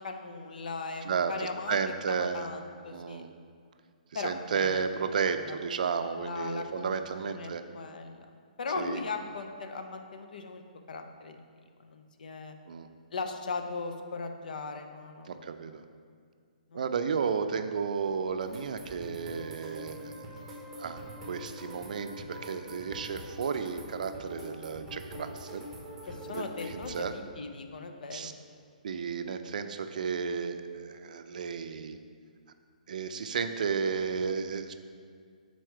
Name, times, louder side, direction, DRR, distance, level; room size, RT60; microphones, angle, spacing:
voice 1, 0.0-1.8 2.1-3.2 4.1-4.8 5.4-5.6 6.2-7.0 7.3-8.3 8.6-10.6 10.9-11.4 11.8-12.6 13.1-15.3 16.7-16.8 26.1-28.3, left 4 dB, 70° left, 6 dB, 0.6 m, -38 dB
voice 2, 1.0-2.5 2.9-3.3 4.1-7.6 8.8-9.0 12.7-12.9 15.3-15.8 16.7-20.1 20.8-21.0 21.3-25.7 26.3-27.1 28.1-28.3 28.8-32.0 32.9-34.7, right 6 dB, 60° right, 8 dB, 0.4 m, -33 dB
sound 1, 18.4-27.0, equal, ahead, 1.0 m, -44 dB
6.3 x 4.1 x 4.6 m, 2.1 s
hypercardioid pair, 165°, 5 cm